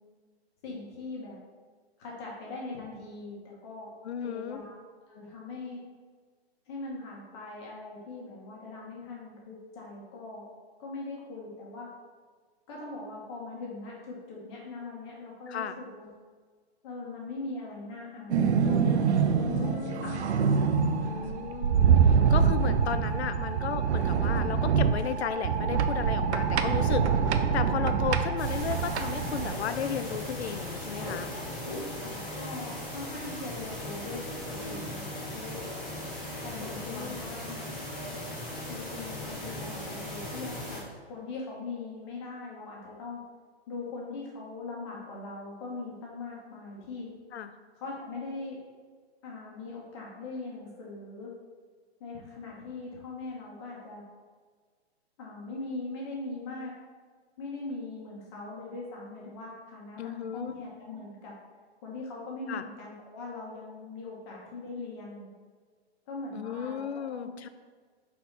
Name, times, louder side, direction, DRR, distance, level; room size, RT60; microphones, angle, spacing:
voice 1, 0.6-1.4 2.0-3.9 4.2-4.7 5.1-5.9 6.7-10.5 10.8-11.9 12.7-16.1 16.8-20.1 21.0-21.4 32.0-35.1 35.3-35.6 36.4-37.8 38.7-43.2 43.7-47.1 47.7-48.6 49.2-51.3 52.0-54.0 55.2-56.8 57.4-61.3 61.8-65.3 66.1-67.5, left 3 dB, 25° left, -3 dB, 1.2 m, -41 dB
voice 2, 4.0-4.6 15.5-15.8 19.3-20.3 21.0-27.0 27.3-31.3 36.5-37.2 47.3-47.5 60.0-60.6 62.5-62.6 66.3-67.5, left 8 dB, 75° left, 10 dB, 0.6 m, -35 dB
sound 1, 18.3-29.6, right 6 dB, 80° right, 0.6 m, -25 dB
sound 2, 28.4-40.8, left 1 dB, 10° left, 0.4 m, -38 dB
4.2 x 4.2 x 5.5 m, 1.5 s
hypercardioid pair, 165°, 33 cm